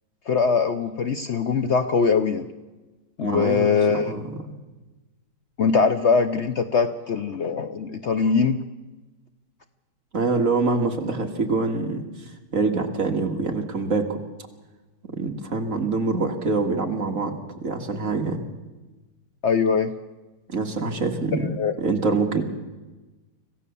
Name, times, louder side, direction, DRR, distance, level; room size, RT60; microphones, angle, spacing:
voice 1, 0.3-2.5 3.2-4.1 5.6-8.6 19.4-19.9 21.4-21.8, left 5 dB, 90° left, 10 dB, 0.6 m, -22 dB
voice 2, 3.2-4.5 10.1-12.1 12.5-14.1 15.1-18.5 20.5-21.5 21.8-22.4, right 3 dB, 40° right, 3 dB, 2.0 m, -25 dB
25.5 x 16.0 x 6.9 m, 1.2 s
omnidirectional pair, 2.3 m